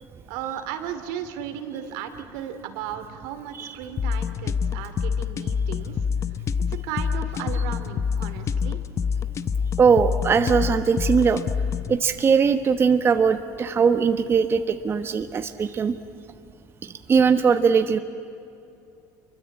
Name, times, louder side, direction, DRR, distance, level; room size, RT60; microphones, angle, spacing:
voice 1, 0.3-6.0 6.7-8.8, right 9 dB, 80° right, 8 dB, 2.7 m, -35 dB
sound 1, 4.0-12.0, left 6 dB, 35° left, 0.8 m, -26 dB
voice 2, 9.8-11.4 11.9-16.0 16.8-18.0, right 6 dB, 30° right, 8 dB, 1.1 m, -20 dB
27.0 x 23.5 x 8.6 m, 2.6 s
cardioid pair, 120°, 9 cm